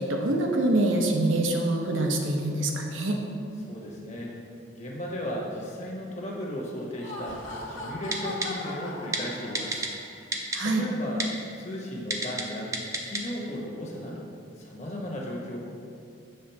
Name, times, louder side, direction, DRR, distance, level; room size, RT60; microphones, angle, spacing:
voice 1, 0.0-3.2 10.5-10.8, right 1 dB, 80° right, 1 dB, 0.8 m, -25 dB
voice 2, 3.7-4.3 4.7-9.8 10.6-14.3 14.6-15.6, equal, 35° left, -2 dB, 1.1 m, -36 dB
Laughter, 6.8-10.1, left 2 dB, 80° left, 1.2 m, -38 dB
Typing, 8.1-8.5 9.1-9.2 9.5-9.9 10.3-10.6 11.2-11.3 12.1-12.4 12.7-13.2 13.6-13.7, right 2 dB, 15° right, 0.4 m, -28 dB
6.7 x 3.7 x 5.8 m, 2.4 s
head